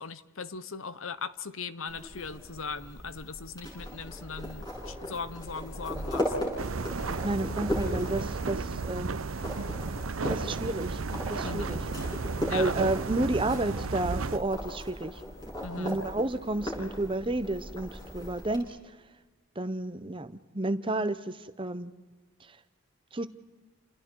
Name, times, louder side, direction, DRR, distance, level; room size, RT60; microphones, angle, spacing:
voice 1, 0.0-6.3 11.4-11.8 12.5-12.7 15.6-16.0, left 5 dB, 75° left, 14 dB, 1.0 m, -39 dB
sound 1, 1.9-18.6, equal, 20° left, 8.0 m, -38 dB
sound 2, 6.6-14.4, right 4 dB, 80° right, 0.7 m, -33 dB
voice 2, 7.2-9.2 10.3-11.0 11.3-11.8 12.5-15.2 15.7-18.8 19.6-21.9 23.1-23.3, right 2 dB, 25° right, 12 dB, 0.9 m, -31 dB
29.5 x 28.5 x 4.7 m, 1.3 s
head